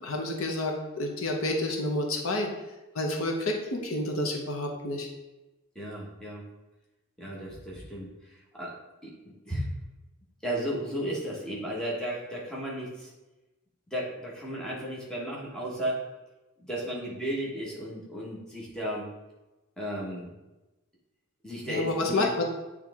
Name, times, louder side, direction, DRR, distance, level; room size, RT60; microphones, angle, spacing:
voice 1, 0.0-2.5 2.9-5.1 21.7-22.4, left 2 dB, 70° left, 1 dB, 0.9 m, -29 dB
voice 2, 5.7-6.5 7.2-9.7 10.4-13.1 13.9-16.1 16.7-19.1 19.8-20.3 21.4-22.3, right 1 dB, 5° left, -5 dB, 1.3 m, -34 dB
8.5 x 3.4 x 3.5 m, 1.0 s
head